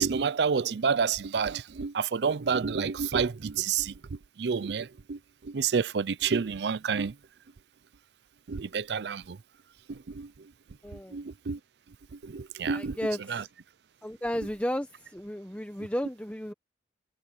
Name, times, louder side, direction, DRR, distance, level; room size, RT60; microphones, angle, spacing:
voice 1, 0.0-7.1 8.5-9.4 9.9-10.3 11.1-11.6 12.2-13.0 13.3-13.4, right 6 dB, 70° right, 0.5 m, -29 dB
voice 2, 10.8-11.2 12.7-13.5 14.0-16.5, equal, 10° left, 1.0 m, -33 dB
head